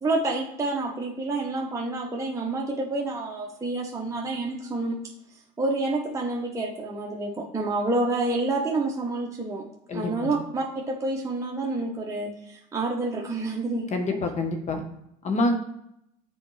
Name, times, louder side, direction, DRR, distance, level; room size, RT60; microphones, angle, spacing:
voice 1, 0.0-5.0 5.6-9.6 9.9-14.2, right 2 dB, 15° right, -2 dB, 1.2 m, -28 dB
voice 2, 9.9-10.3 13.9-14.8 15.2-15.6, left 2 dB, 40° left, 4 dB, 1.2 m, -26 dB
7.6 x 4.1 x 3.3 m, 0.77 s
hypercardioid pair, 80°, 19 cm